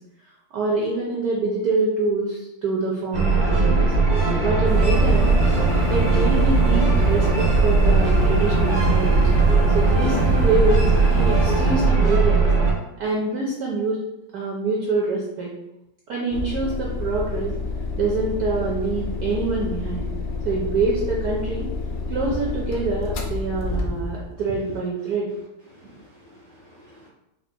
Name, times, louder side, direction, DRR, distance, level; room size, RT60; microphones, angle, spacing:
voice 1, 0.5-3.9 4.4-5.4 5.8-9.2 9.7-12.5 13.0-14.0 14.3-15.5 16.1-17.6 18.0-20.1 20.4-21.7 22.1-25.3, right 3 dB, 75° right, -3 dB, 0.8 m, -25 dB
sound 1, 3.1-12.7, right 4 dB, 45° right, 0.7 m, -19 dB
sound 2, 4.6-11.7, equal, 5° left, 0.4 m, -24 dB
sound 3, 16.3-24.3, left 3 dB, 80° left, 0.7 m, -29 dB
voice 2, 25.7-27.1, right 1 dB, 50° left, -6 dB, 0.9 m, -44 dB
4.4 x 2.8 x 2.2 m, 0.90 s
omnidirectional pair, 2.2 m